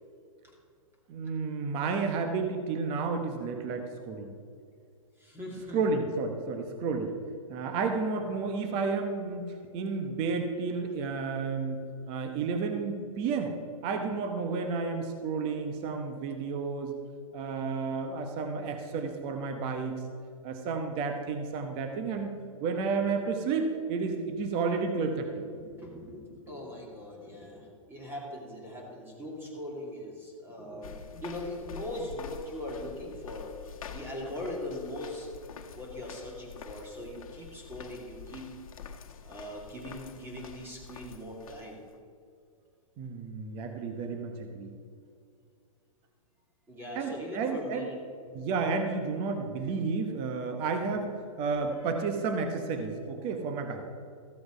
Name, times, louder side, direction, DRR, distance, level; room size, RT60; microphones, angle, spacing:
voice 1, 1.1-4.3 5.7-7.1 7.5-9.4 9.7-11.8 12.1-13.5 13.8-17.0 17.3-20.0 20.4-22.3 22.6-25.4 43.0-44.7 46.9-47.9 48.3-53.8, right 4 dB, 30° right, 6 dB, 1.0 m, -31 dB
voice 2, 5.2-5.8 25.4-33.5 33.8-35.3 35.7-38.5 39.2-41.8 46.7-48.4 51.7-51.9, left 1 dB, 10° right, -1 dB, 2.3 m, -40 dB
sound 1, 30.8-42.0, left 6 dB, 75° left, 1.2 m, -46 dB
14.0 x 7.8 x 5.0 m, 2.4 s
hypercardioid pair, 145°, 18 cm